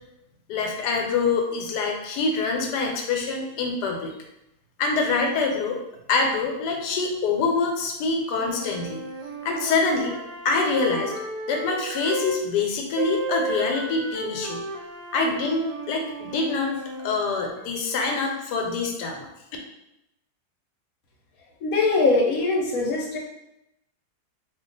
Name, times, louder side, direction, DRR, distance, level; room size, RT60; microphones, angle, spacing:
voice 1, 0.5-4.1 4.8-5.8 6.1-9.0 9.4-10.2 10.4-11.1 11.5-14.6 15.1-19.3, left 4 dB, 85° left, 2 dB, 1.2 m, -25 dB
sound 1, 8.3-12.4 13.0-17.2, right 2 dB, 85° right, 1.2 m, -33 dB
voice 2, 21.6-23.2, left 3 dB, 65° left, -1 dB, 1.1 m, -22 dB
2.7 x 2.3 x 3.8 m, 0.84 s
omnidirectional pair, 1.8 m